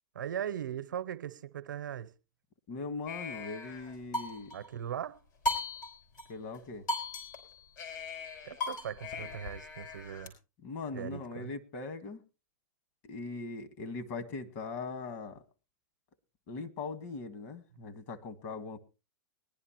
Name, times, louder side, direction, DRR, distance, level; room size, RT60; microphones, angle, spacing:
voice 1, 0.1-2.1 4.5-5.2 8.4-10.3 10.9-11.5, right 9 dB, 85° right, 0.7 m, -39 dB
voice 2, 2.7-4.5 6.3-6.9 10.6-12.2 13.0-15.4 16.5-18.8, left 4 dB, 45° left, 1.5 m, -40 dB
sound 1, 3.1-4.7 5.4-6.3 6.5-6.6 6.9-10.3, left 2 dB, 75° left, 5.0 m, -37 dB
20.5 x 11.0 x 3.0 m
hypercardioid pair, 120°, 10 cm